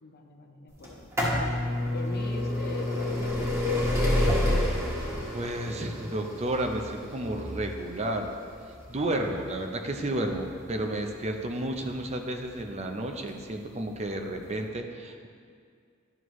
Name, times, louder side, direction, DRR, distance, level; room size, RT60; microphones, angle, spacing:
voice 1, 0.0-3.9, left 2 dB, 50° left, 4 dB, 0.7 m, -42 dB
sound 1, 0.8-12.5 13.3-13.4 14.4-14.5 14.6-14.7, left 1 dB, 15° right, 1.4 m, -29 dB
voice 2, 5.3-8.3 8.9-15.3, right 1 dB, 35° right, 4 dB, 0.6 m, -32 dB
11.0 x 6.3 x 3.1 m, 2.2 s
head